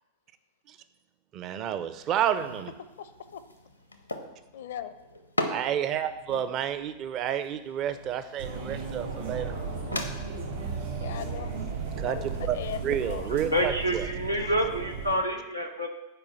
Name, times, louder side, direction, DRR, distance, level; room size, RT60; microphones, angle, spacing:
voice 1, 1.3-2.7 5.5-9.5 12.0-12.6 12.8-14.1, right 9 dB, 35° right, 12 dB, 0.5 m, -30 dB
sound 1, 1.9-10.1, left 1 dB, 85° left, 0.8 m, -39 dB
voice 2, 3.0-3.4 4.5-4.9 9.5-10.0 11.0-11.5 12.1-13.3, left 10 dB, 60° left, 13 dB, 0.5 m, -39 dB
sound 2, 8.4-15.2, right 5 dB, 60° right, 2.6 m, -35 dB
voice 3, 13.3-15.9, equal, 85° right, 2 dB, 1.1 m, -28 dB
6.9 x 5.0 x 7.1 m, 1.0 s
figure-of-eight pair, 90°, 0 cm